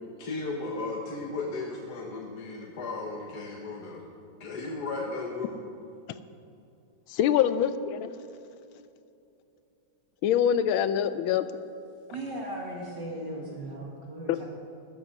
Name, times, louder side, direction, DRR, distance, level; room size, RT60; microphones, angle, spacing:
voice 1, 0.2-4.0 4.4-5.6, left 3 dB, 55° left, -1 dB, 1.7 m, -35 dB
voice 2, 7.1-8.1 10.2-11.5 14.3-14.4, left 9 dB, 85° left, 12 dB, 1.5 m, -24 dB
voice 3, 12.1-14.5, right 1 dB, 60° right, -2 dB, 2.3 m, -37 dB
14.0 x 14.0 x 5.4 m, 2.7 s
omnidirectional pair, 2.2 m